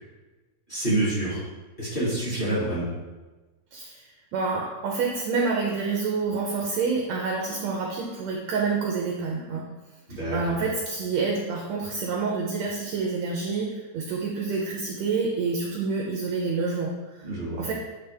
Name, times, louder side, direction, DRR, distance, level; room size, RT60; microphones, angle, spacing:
voice 1, 0.7-1.4 1.8-2.9 10.1-10.6 17.2-17.6, right 1 dB, 20° left, -8 dB, 1.4 m, -27 dB
voice 2, 3.7-4.0 4.3-9.7 10.1-17.3 17.6-17.7, right 4 dB, 75° right, 0 dB, 1.7 m, -28 dB
9.7 x 3.4 x 3.4 m, 1.2 s
omnidirectional pair, 3.8 m